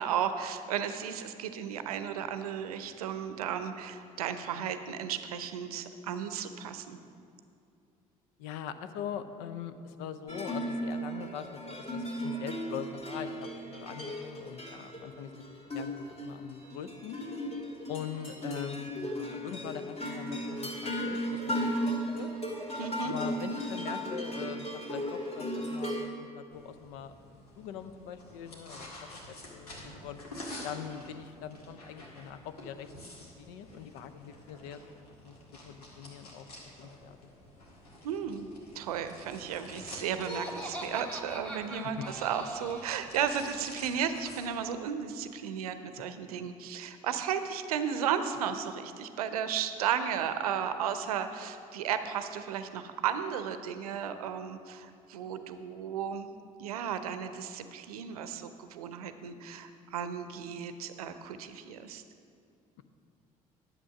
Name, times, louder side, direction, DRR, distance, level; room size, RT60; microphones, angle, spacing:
voice 1, 0.0-7.0 22.8-23.1 38.0-38.5 38.7-56.3 56.6-62.0, right 8 dB, 75° right, 10 dB, 0.6 m, -34 dB
voice 2, 8.4-17.2 17.9-22.3 23.0-27.3 27.6-29.1 29.5-30.2 30.6-32.9 33.4-34.8 35.2-35.3 35.6-36.5 36.8-37.3, left 8 dB, 65° left, 11 dB, 0.6 m, -42 dB
sound 1, 10.3-26.0, equal, 35° left, 2.4 m, -36 dB
sound 2, 26.5-44.5, left 1 dB, 80° left, 1.7 m, -49 dB
Laughter, 40.1-43.0, right 1 dB, 5° left, 2.0 m, -41 dB
11.0 x 7.2 x 5.8 m, 2.5 s
figure-of-eight pair, 50°, 19 cm